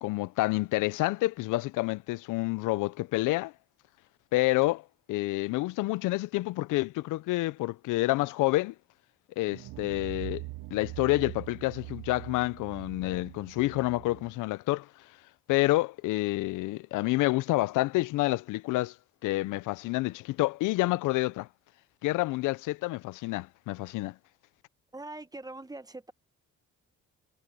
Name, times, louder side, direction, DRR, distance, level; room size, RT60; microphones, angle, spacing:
voice 1, 0.0-3.5 4.3-4.8 5.1-8.7 9.4-10.4 10.7-14.9 15.5-18.9 19.2-21.5 22.0-24.1, left 19 dB, 90° left, 0.5 m, -28 dB
sound 1, 9.5-14.4, right 20 dB, 80° right, 0.9 m, -43 dB
voice 2, 24.9-26.1, right 2 dB, 10° right, 1.3 m, -42 dB
cardioid pair, 90°, 30 cm